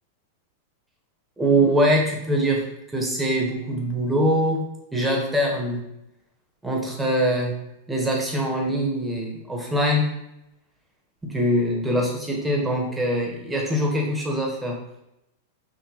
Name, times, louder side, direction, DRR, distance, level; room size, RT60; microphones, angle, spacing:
voice 1, 1.4-2.6 2.9-4.6 4.9-5.9 6.6-7.6 7.9-10.1 11.2-14.8, equal, 10° right, -1 dB, 1.2 m, -23 dB
5.0 x 2.8 x 3.0 m, 0.86 s
hypercardioid pair, 105°, 0 cm